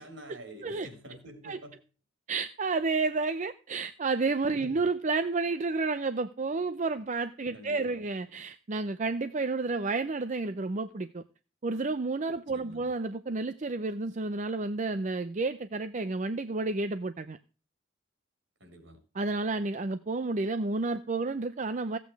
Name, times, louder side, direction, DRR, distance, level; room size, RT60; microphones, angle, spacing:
voice 1, 0.0-1.8 4.6-4.8 7.5-8.0 12.5-12.9 18.6-19.0, equal, 65° right, 4.1 m, -47 dB
voice 2, 2.3-11.2 11.6-17.4 19.1-22.0, right 3 dB, 40° right, 0.5 m, -31 dB
15.0 x 8.4 x 4.6 m
head